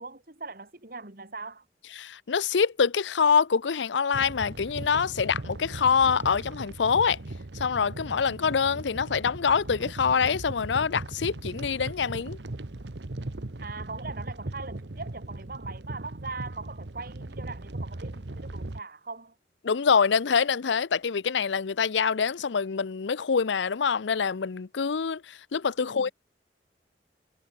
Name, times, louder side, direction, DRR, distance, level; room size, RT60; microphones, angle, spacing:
voice 1, 0.0-1.6 13.6-19.3 25.8-26.1, right 3 dB, 55° right, 2.8 m, -40 dB
voice 2, 2.0-7.2 7.5-12.4 19.6-26.1, left 6 dB, 85° left, 0.6 m, -25 dB
sound 1, 4.1-18.8, right 2 dB, 75° right, 1.2 m, -38 dB
head